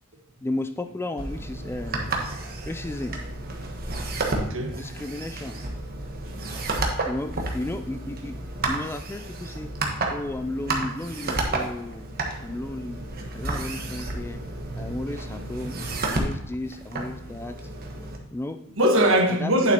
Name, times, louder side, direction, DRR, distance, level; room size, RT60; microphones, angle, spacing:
voice 1, 0.4-2.2 2.7-3.2 4.8-5.6 6.8-8.3 8.7-9.7 10.1-12.0 12.4-13.0 13.3-14.4 14.7-15.8 16.0-17.7 18.3-18.6 19.4-19.7, left 2 dB, 10° left, 0.3 m, -33 dB
sound 1, 1.2-18.2, right 2 dB, 45° right, 1.3 m, -31 dB
voice 2, 4.4-4.8 6.2-6.5 14.7-14.9 15.6-15.7 18.7-19.7, right 1 dB, 65° right, 1.4 m, -22 dB
9.1 x 7.4 x 2.9 m
head